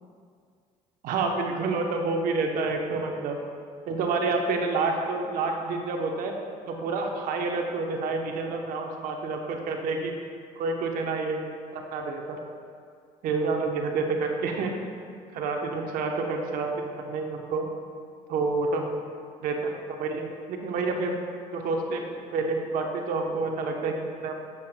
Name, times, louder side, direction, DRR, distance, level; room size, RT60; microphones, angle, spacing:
voice 1, 1.0-3.4 3.9-6.3 6.7-10.1 10.6-11.4 11.7-12.4 13.2-14.8 15.3-17.7 18.3-18.9 19.4-20.2 20.5-21.2 21.5-24.4, right 3 dB, 75° right, 2 dB, 0.9 m, -28 dB
8.4 x 8.2 x 2.2 m, 2.2 s
cardioid pair, 95°, 15 cm